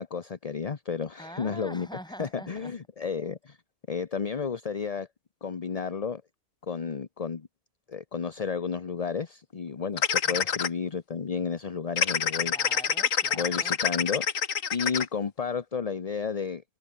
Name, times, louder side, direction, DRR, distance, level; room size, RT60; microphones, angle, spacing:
voice 1, 0.0-1.9 2.2-3.6 3.9-5.1 5.4-6.2 6.6-7.5 7.9-12.5 13.3-14.3 14.7-16.6, left 6 dB, 35° left, 0.7 m, -32 dB
voice 2, 1.2-2.7 10.2-10.4 12.4-13.7, equal, 5° left, 7.9 m, -44 dB
sound 1, 10.0-10.7 12.0-15.1, left 7 dB, 65° left, 1.7 m, -26 dB
omnidirectional pair, 1.5 m